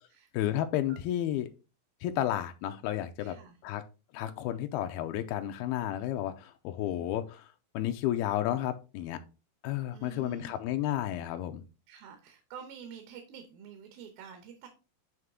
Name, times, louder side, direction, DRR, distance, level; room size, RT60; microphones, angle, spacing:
voice 1, 0.3-1.5 2.0-3.4 3.6-3.8 4.1-7.4 7.7-9.2 9.6-11.6, left 12 dB, 90° left, 8 dB, 2.5 m, -32 dB
voice 2, 3.2-3.6 6.8-7.2 9.9-10.6 11.9-14.7, right 7 dB, 80° right, 5 dB, 2.7 m, -48 dB
9.3 x 3.3 x 3.6 m, 0.30 s
omnidirectional pair, 4.3 m